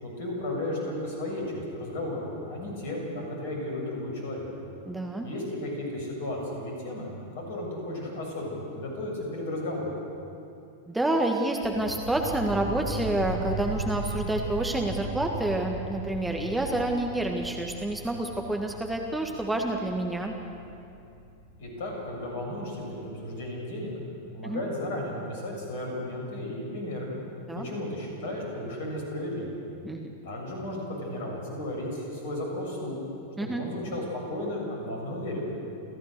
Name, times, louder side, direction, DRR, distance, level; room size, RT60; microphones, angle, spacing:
voice 1, 0.0-4.5 5.2-9.9 21.6-23.9 24.3-27.1 27.5-29.5 30.2-33.0 33.4-35.6, left 1 dB, 55° left, -1 dB, 7.1 m, -34 dB
voice 2, 4.8-5.3 10.9-20.3 24.4-24.6 27.5-27.6 29.8-30.1 33.4-33.6, right 2 dB, 5° right, 2 dB, 1.7 m, -28 dB
sound 1, 11.6-22.6, right 1 dB, 70° right, 2.7 m, -37 dB
28.5 x 14.5 x 6.7 m, 2.6 s
figure-of-eight pair, 90°, 0 cm